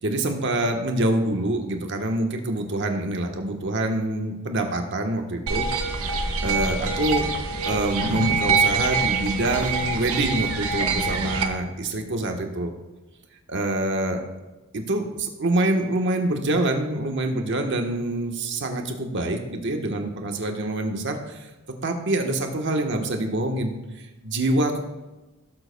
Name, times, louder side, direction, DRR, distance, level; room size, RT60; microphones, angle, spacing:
voice 1, 0.0-5.7 6.1-7.3 7.6-12.7 13.5-14.2 14.7-21.5 21.8-23.8 24.2-24.8, right 1 dB, 55° right, 3 dB, 1.1 m, -25 dB
sound 1, 5.5-11.4, right 4 dB, 80° right, 1.0 m, -25 dB
16.5 x 7.7 x 2.2 m, 1.1 s
head